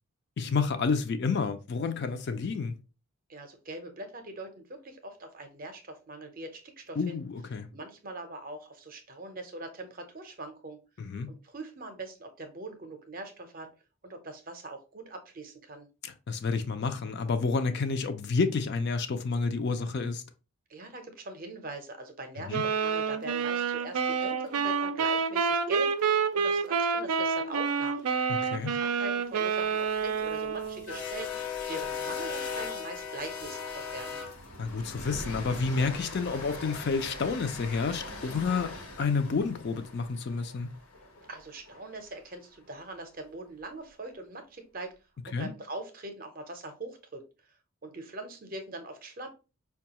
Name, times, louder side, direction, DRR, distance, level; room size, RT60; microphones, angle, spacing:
voice 1, 0.4-2.7 7.0-7.7 11.0-11.3 16.0-20.2 22.5-22.6 28.3-28.7 34.6-38.7 39.0-40.7 45.3-45.5, left 4 dB, 50° left, 0.4 m, -30 dB
voice 2, 3.3-7.2 7.7-10.8 11.3-13.7 14.0-15.9 20.7-28.0 28.5-34.2 41.3-44.9 45.3-47.6 47.8-49.3, right 2 dB, 40° right, 0.6 m, -42 dB
sound 1, 22.5-30.9, right 6 dB, 85° right, 0.4 m, -28 dB
sound 2, 29.6-41.8, left 5 dB, 80° left, 0.9 m, -39 dB
4.6 x 2.3 x 2.8 m
head